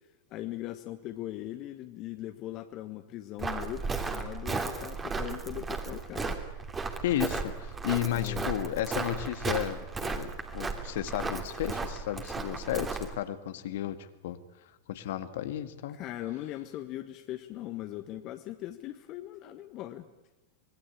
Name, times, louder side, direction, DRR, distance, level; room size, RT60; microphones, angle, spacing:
voice 1, 0.3-6.4 8.1-8.5 15.9-20.1, left 14 dB, 40° left, 9 dB, 1.3 m, -40 dB
Walk footsteps, 3.4-13.1, right 4 dB, 20° right, 3.0 m, -35 dB
voice 2, 7.0-14.4 14.9-16.0, left 12 dB, 60° left, 11 dB, 1.7 m, -33 dB
26.0 x 20.5 x 8.7 m, 1.0 s
figure-of-eight pair, 95°, 0 cm